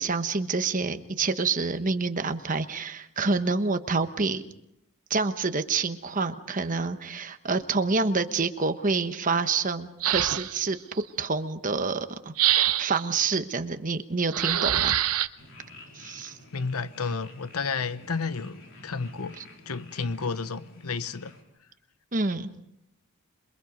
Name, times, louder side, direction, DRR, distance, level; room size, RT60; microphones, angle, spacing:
voice 1, 0.0-4.4 5.1-10.8 11.2-12.3 12.8-15.0 15.9-16.4 22.1-22.5, right 4 dB, 35° right, 1.1 m, -27 dB
sound 1, 10.0-10.7 12.4-13.1 14.3-15.3, right 12 dB, 75° right, 0.9 m, -24 dB
sound 2, 15.4-21.4, left 2 dB, 60° left, 4.5 m, -50 dB
voice 2, 16.5-19.4 19.7-21.3, left 4 dB, 80° left, 1.0 m, -31 dB
27.0 x 23.0 x 5.3 m
head